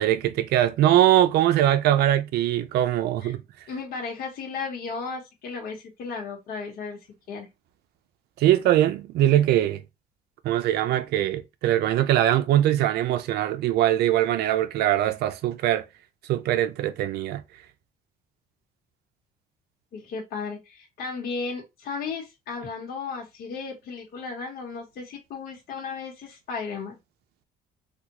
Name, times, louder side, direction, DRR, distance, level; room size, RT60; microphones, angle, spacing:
voice 1, 0.0-3.4 8.4-9.8 10.4-15.8 16.3-17.4, right 12 dB, 75° right, 0.5 m, -22 dB
voice 2, 3.7-7.0 7.3-7.5 19.9-27.0, left 4 dB, 65° left, 1.1 m, -34 dB
3.5 x 2.3 x 2.9 m
cardioid pair, 110°, 17 cm